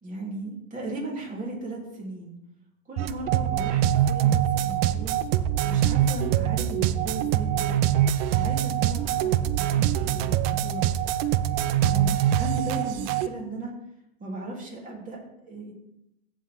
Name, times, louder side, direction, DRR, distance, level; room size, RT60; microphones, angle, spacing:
voice 1, 0.0-2.4 2.9-5.2 5.6-7.8 8.3-10.9 11.8-13.7 14.2-15.7, right 2 dB, 25° right, -3 dB, 3.5 m, -36 dB
sound 1, 3.0-13.3, right 11 dB, 60° right, 0.6 m, -24 dB
14.0 x 4.9 x 3.8 m, 0.84 s
supercardioid pair, 110°, 32 cm